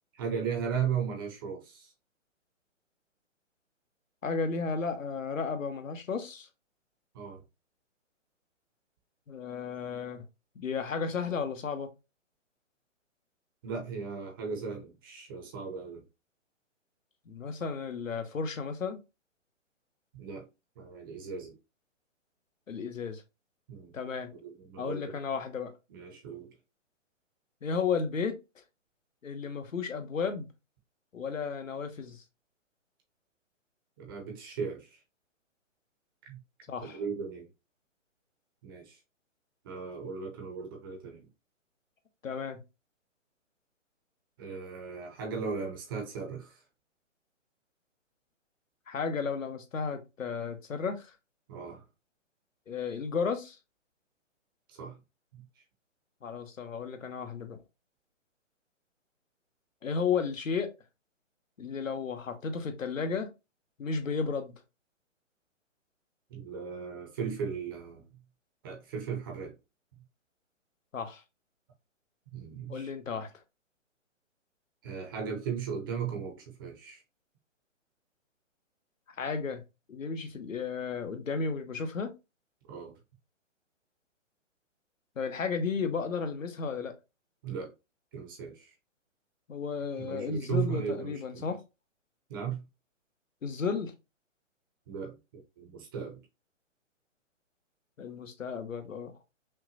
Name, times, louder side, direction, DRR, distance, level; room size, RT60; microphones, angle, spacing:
voice 1, 0.1-1.9 7.1-7.4 13.6-16.0 20.1-20.4 20.8-21.5 23.7-23.9 24.3-25.1 25.9-26.5 34.0-35.0 36.3-36.4 36.8-37.5 38.6-39.0 39.6-41.3 44.4-46.6 51.5-51.8 54.7-55.0 55.3-55.4 66.3-68.0 68.6-69.5 72.3-72.9 74.8-77.0 82.7-83.0 87.4-87.7 88.1-88.7 90.0-91.5 92.3-92.6 94.9-96.2, right 6 dB, 20° right, 0.6 m, -37 dB
voice 2, 4.2-6.5 9.3-10.2 10.5-11.9 17.3-19.0 22.7-23.2 23.9-24.3 24.8-25.7 27.6-28.3 29.2-30.5 31.1-32.2 36.7-37.0 42.2-42.6 48.9-51.1 52.7-53.6 56.2-57.6 59.8-60.7 61.6-63.3 63.8-64.5 70.9-71.2 72.7-73.3 79.2-79.6 79.9-82.1 85.2-86.9 89.5-91.6 93.4-93.9 98.0-99.1, left 5 dB, 85° left, 1.1 m, -33 dB
5.7 x 2.2 x 2.8 m
hypercardioid pair, 140°, 38 cm